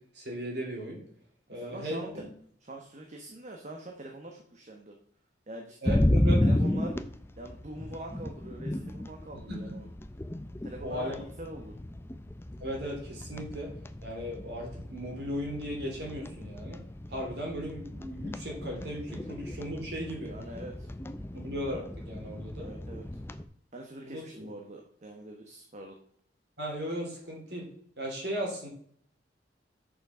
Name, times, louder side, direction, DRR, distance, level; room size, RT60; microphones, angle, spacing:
voice 1, 0.1-1.0 1.5-2.2 5.8-6.4 9.5-9.7 10.8-11.2 12.6-13.7 14.0-16.8 17.1-20.3 21.3-22.7 24.0-24.2 26.6-27.7 28.0-28.7, equal, 65° right, -1 dB, 3.3 m, -36 dB
voice 2, 1.5-2.2 2.7-4.9 5.5-6.0 6.4-7.0 7.4-9.9 10.6-11.8 20.2-20.9 22.6-23.2 23.7-26.0, right 1 dB, 40° right, 2 dB, 1.1 m, -44 dB
sound 1, 5.8-23.4, left 1 dB, 15° left, 0.4 m, -33 dB
6.9 x 6.1 x 6.1 m, 0.62 s
head